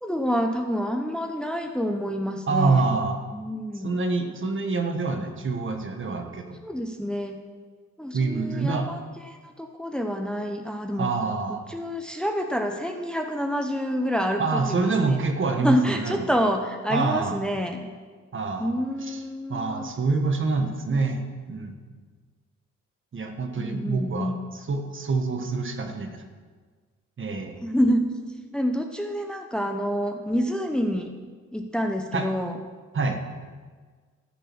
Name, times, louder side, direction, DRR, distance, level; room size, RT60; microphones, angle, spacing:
voice 1, 0.0-2.8 3.3-4.0 6.6-7.4 8.0-9.0 9.3-11.1 11.5-15.2 15.6-17.9 18.6-19.9 23.6-24.4 27.6-28.1 28.5-31.2 31.5-32.6, equal, 5° left, 4 dB, 0.9 m, -27 dB
voice 2, 2.5-3.2 3.8-6.6 8.1-8.9 11.0-11.6 14.4-16.2 16.9-17.4 18.3-18.7 19.1-19.2 19.5-21.2 21.5-21.8 23.1-26.2 27.2-27.6 32.1-32.3 32.9-33.2, right 4 dB, 40° right, 5 dB, 1.5 m, -26 dB
13.0 x 9.1 x 6.2 m, 1.5 s
cardioid pair, 90°, 30 cm